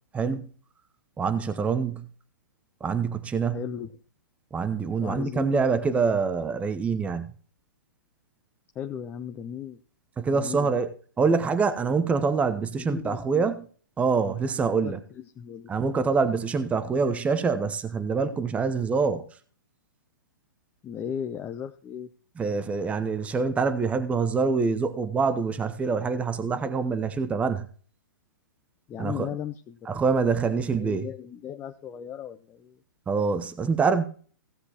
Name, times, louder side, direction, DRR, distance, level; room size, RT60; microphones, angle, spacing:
voice 1, 0.1-0.5 1.2-2.1 2.8-3.6 4.5-7.3 10.2-13.7 14.0-15.0 15.7-19.3 22.4-27.7 29.0-29.3 29.9-31.1 33.1-34.0, right 5 dB, 10° right, 0.8 m, -25 dB
voice 2, 3.5-3.9 5.0-6.0 8.7-9.8 10.3-10.7 12.7-13.4 14.7-15.7 20.8-22.1 28.9-32.8, left 9 dB, 20° left, 0.7 m, -37 dB
17.0 x 8.0 x 2.9 m
figure-of-eight pair, 120°, 11 cm